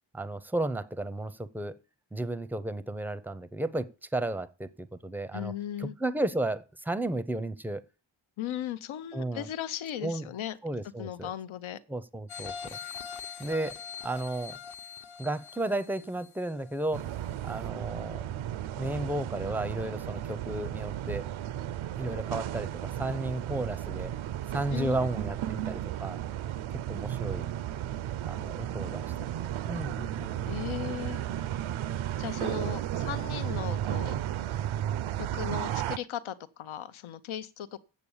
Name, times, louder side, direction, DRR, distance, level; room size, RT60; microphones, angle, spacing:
voice 1, 0.1-1.8 2.1-5.5 5.8-7.8 9.1-9.5 10.0-10.3 10.6-11.3 11.9-12.8 13.4-14.6 15.2-17.1 17.4-18.2 18.7-21.3 22.0-24.1 24.5-26.2 26.9-27.5 28.2-29.1 29.7-30.6, right 2 dB, 5° right, 0.5 m, -33 dB
voice 2, 5.3-5.9 8.4-10.6 11.0-11.8 24.7-25.1 30.5-31.2 32.2-34.2 35.2-37.8, left 11 dB, 85° left, 0.7 m, -37 dB
sound 1, 12.3-17.0 17.5-17.6, left 7 dB, 55° left, 1.0 m, -43 dB
sound 2, 16.9-36.0, right 12 dB, 90° right, 0.6 m, -34 dB
8.4 x 7.0 x 7.1 m
wide cardioid pair, 145°, 47 cm